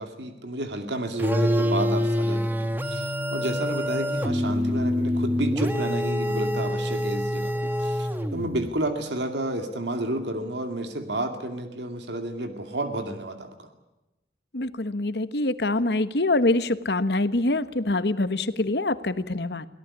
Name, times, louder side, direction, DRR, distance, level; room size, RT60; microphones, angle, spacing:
voice 1, 0.0-13.7, right 1 dB, 80° right, 6 dB, 2.4 m, -31 dB
sound 1, 1.2-8.7, equal, 10° right, 1.2 m, -26 dB
voice 2, 14.5-19.7, left 2 dB, 70° left, 13 dB, 1.2 m, -25 dB
24.0 x 17.5 x 9.8 m, 0.99 s
head